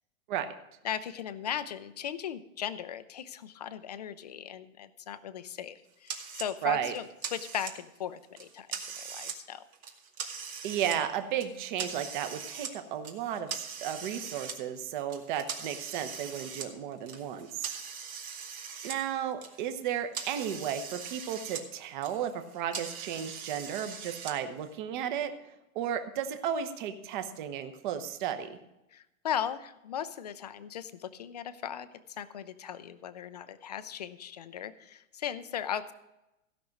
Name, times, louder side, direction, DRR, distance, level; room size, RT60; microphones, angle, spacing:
voice 1, 0.8-7.1 7.3-8.7 9.1-9.6 28.9-31.9 32.2-35.9, left 9 dB, 30° left, 13 dB, 0.4 m, -37 dB
sound 1, 6.1-6.5 6.9-8.0 8.4-9.4 9.7-11.0 11.4-12.7 13.0-14.5 15.1-19.0 19.3-21.6 21.9-24.3, right 6 dB, 90° right, 2.3 m, -41 dB
voice 2, 6.6-6.9 10.6-17.8 18.8-25.3 25.7-28.6, right 9 dB, 35° right, 8 dB, 1.0 m, -34 dB
16.0 x 6.0 x 6.4 m, 0.92 s
supercardioid pair, 165°, 41 cm